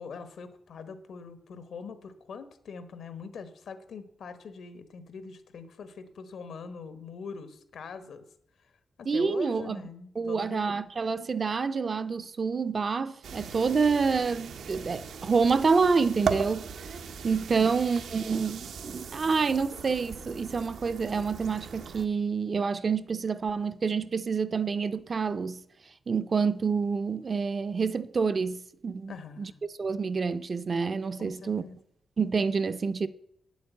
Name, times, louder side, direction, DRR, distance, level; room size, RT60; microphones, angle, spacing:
voice 1, 0.0-8.2 9.0-10.8 17.6-17.7 29.1-29.6 31.2-31.8, left 5 dB, 75° left, 1.3 m, -43 dB
voice 2, 9.1-9.8 10.2-16.7 17.2-25.6 26.1-29.5 29.8-31.6 32.2-33.1, right 5 dB, 35° right, 0.5 m, -27 dB
sound 1, 13.2-22.1, right 6 dB, 90° right, 1.0 m, -38 dB
9.1 x 8.0 x 8.2 m
wide cardioid pair, 165°, 0 cm